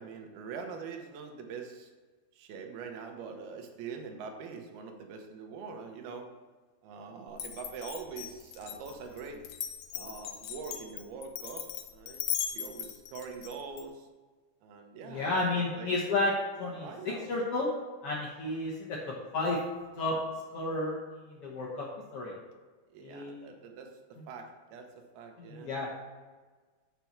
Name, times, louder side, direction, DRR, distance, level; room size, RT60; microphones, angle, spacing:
voice 1, 0.0-1.9 2.3-6.3 6.8-9.4 9.9-14.1 14.6-15.9 16.8-17.3 22.9-24.9 25.1-25.7, right 5 dB, 80° right, 4 dB, 2.9 m, -44 dB
Glass, 7.3-13.8, left 9 dB, 85° left, 1.6 m, -38 dB
voice 2, 15.1-16.3 16.6-17.7 18.0-19.6 20.0-20.2 20.5-21.9 22.1-22.3 23.0-23.5 25.5-25.9, left 2 dB, 70° left, -4 dB, 1.3 m, -32 dB
6.8 x 5.8 x 7.3 m, 1.4 s
omnidirectional pair, 4.4 m